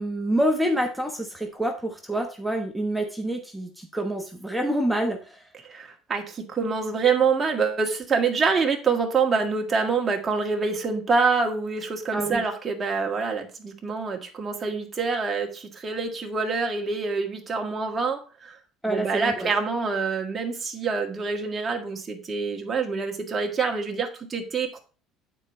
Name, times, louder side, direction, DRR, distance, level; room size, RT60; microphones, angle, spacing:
voice 1, 0.0-5.4 12.1-12.4 18.8-19.5, right 1 dB, ahead, 2 dB, 1.1 m, -27 dB
voice 2, 5.7-18.6 18.9-24.8, right 4 dB, 25° right, 2 dB, 1.7 m, -26 dB
9.0 x 4.6 x 4.3 m, 0.36 s
cardioid pair, 120°, 0 cm